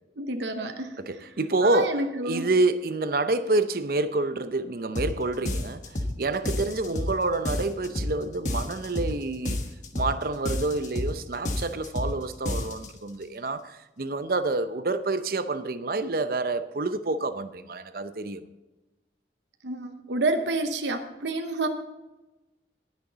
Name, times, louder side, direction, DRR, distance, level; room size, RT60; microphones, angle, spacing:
voice 1, 0.2-1.0 1.6-2.5 19.6-21.7, right 2 dB, 80° right, 0.9 m, -29 dB
voice 2, 1.0-9.6 9.9-18.4, right 2 dB, 55° right, 0.6 m, -28 dB
sound 1, 4.9-5.1 5.4-6.1 6.4-7.1 7.4-8.1 8.4-9.1 9.4-10.1 10.4-11.1 11.4-12.1 12.4-12.9, left 1 dB, 40° left, 1.2 m, -29 dB
19.0 x 6.4 x 4.0 m
head